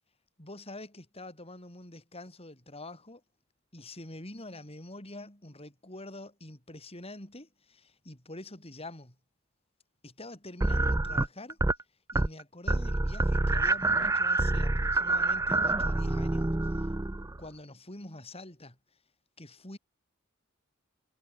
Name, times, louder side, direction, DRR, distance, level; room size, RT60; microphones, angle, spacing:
voice 1, 0.4-3.2 3.7-9.1 10.0-11.6 12.1-16.9 17.4-18.8 19.4-19.8, left 1 dB, 30° left, 6.6 m, -46 dB
sound 1, 10.6-11.8 12.1-12.4 12.7-17.4, right 2 dB, 15° right, 0.5 m, -27 dB
head